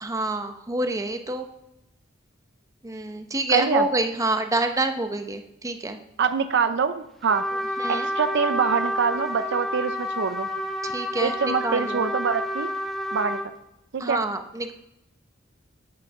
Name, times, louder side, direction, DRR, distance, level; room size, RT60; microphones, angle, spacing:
voice 1, 0.0-1.5 2.8-6.0 7.8-8.1 10.8-12.1 14.0-14.7, right 2 dB, 15° right, 7 dB, 0.7 m, -27 dB
voice 2, 3.5-3.8 6.2-7.4 7.9-10.5 11.2-12.7 13.1-13.4 13.9-14.2, right 6 dB, 60° right, 10 dB, 0.5 m, -25 dB
Trumpet, 7.3-13.5, equal, ahead, 1.2 m, -29 dB
8.5 x 6.2 x 5.8 m, 0.87 s
head